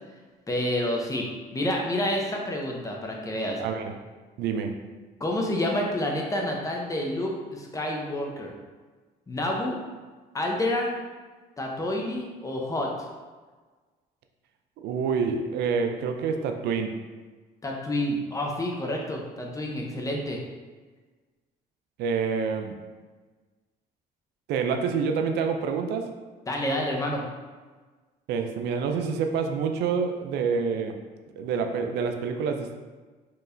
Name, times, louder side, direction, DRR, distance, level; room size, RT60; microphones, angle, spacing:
voice 1, 0.5-1.3 1.5-3.6 5.2-8.5 9.3-9.8 10.3-10.9 11.6-12.9 17.6-20.4 26.5-27.2, left 1 dB, 20° left, 0 dB, 0.7 m, -28 dB
voice 2, 3.6-4.0 4.4-4.8 14.8-17.0 22.0-22.8 24.5-26.1 28.3-31.0 31.4-32.7, right 5 dB, 80° right, 5 dB, 0.4 m, -27 dB
4.7 x 3.1 x 2.6 m, 1.3 s
cardioid pair, 110°, 17 cm